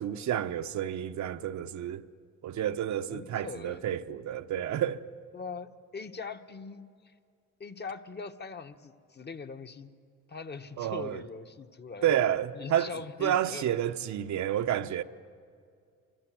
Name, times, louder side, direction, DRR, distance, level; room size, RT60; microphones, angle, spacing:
voice 1, 0.0-2.0 2.4-5.0 10.8-11.2 12.0-12.9 13.2-15.0, right 10 dB, 70° right, 0.9 m, -30 dB
voice 2, 3.1-3.9 5.3-7.1 7.6-9.9 10.3-12.1 12.5-13.7, left 4 dB, 35° left, 1.2 m, -41 dB
27.0 x 24.5 x 7.7 m
cardioid pair, 90°, 30 cm